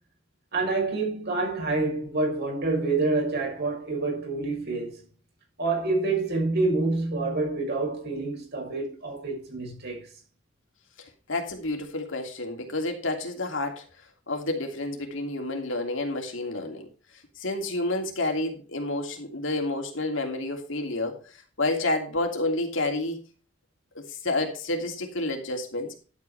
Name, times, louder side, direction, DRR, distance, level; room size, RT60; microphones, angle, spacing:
voice 1, 0.5-5.0 5.6-10.1, right 3 dB, 55° right, 6.4 m, -27 dB
voice 2, 11.3-13.8 14.3-16.9 17.4-21.2 21.6-23.2 23.9-25.9, left 2 dB, 75° left, 3.0 m, -29 dB
11.5 x 8.6 x 3.4 m
head